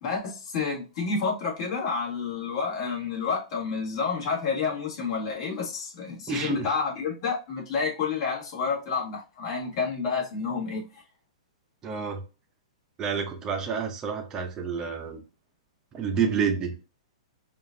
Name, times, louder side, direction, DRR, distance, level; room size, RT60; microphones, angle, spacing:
voice 1, 0.0-11.0, left 5 dB, 45° left, 1.8 m, -29 dB
voice 2, 6.3-6.7 11.8-12.2 13.0-15.2 15.9-16.7, right 6 dB, 15° right, 0.6 m, -29 dB
5.0 x 2.5 x 2.6 m
hypercardioid pair, 160°, 4 cm